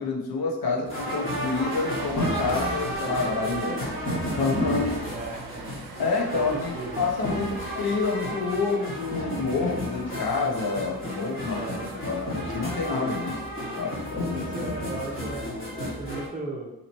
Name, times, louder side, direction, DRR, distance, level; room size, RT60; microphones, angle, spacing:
voice 1, 0.0-3.8 4.3-4.9 6.0-11.7 12.1-13.4 13.8-14.5, left 4 dB, 75° left, -1 dB, 0.9 m, -28 dB
sound 1, 0.9-16.3, equal, 30° left, 1.3 m, -32 dB
sound 2, 1.6-8.2, right 5 dB, 70° right, 0.6 m, -44 dB
voice 2, 4.8-5.7 6.3-7.0 11.5-11.9 14.3-16.7, right 2 dB, 20° right, -1 dB, 0.6 m, -36 dB
3.0 x 2.9 x 4.0 m, 0.92 s
wide cardioid pair, 105°, 38 cm